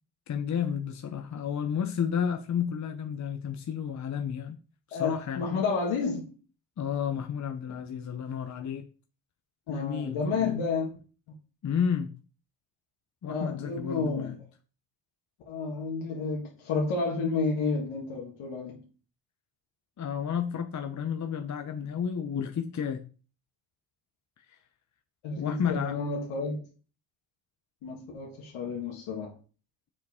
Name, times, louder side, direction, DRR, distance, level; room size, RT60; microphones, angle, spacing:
voice 1, 0.3-4.6 4.9-5.5 6.8-8.9 9.7-10.6 11.6-12.1 13.2-14.4 20.0-23.0 24.5-24.6 25.4-26.0, left 7 dB, 35° left, 0.7 m, -31 dB
voice 2, 4.9-6.3 9.7-10.9 13.2-14.3 15.5-18.8 25.2-26.6 27.8-29.4, left 4 dB, 70° left, 1.7 m, -31 dB
6.9 x 4.7 x 3.6 m
supercardioid pair, 65°, 50 cm